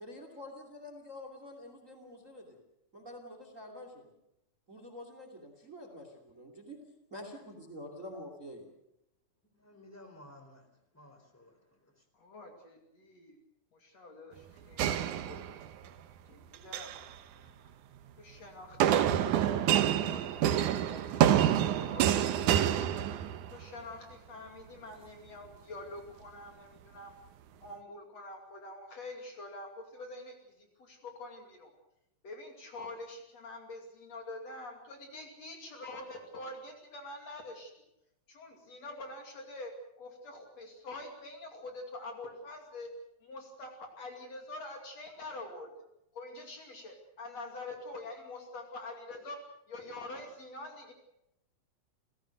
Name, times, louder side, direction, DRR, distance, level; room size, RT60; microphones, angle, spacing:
voice 1, 0.0-2.6 2.9-4.1 4.7-6.8 7.1-8.7, left 1 dB, 25° right, 5 dB, 2.8 m, -47 dB
voice 2, 9.5-10.7 10.9-11.9, left 1 dB, 5° left, 5 dB, 3.4 m, -55 dB
voice 3, 12.2-13.4 13.7-15.5 16.3-17.1 17.4-17.7 18.2-21.4 21.9-23.0 23.5-27.1 27.6-31.7 32.2-37.7 38.3-43.0 43.2-45.8 46.1-50.9, left 2 dB, 50° left, 3 dB, 3.7 m, -46 dB
sound 1, 14.8-15.9 16.5-17.0 18.8-23.6, right 10 dB, 70° right, 2.3 m, -27 dB
29.5 x 17.0 x 6.6 m, 0.83 s
omnidirectional pair, 4.1 m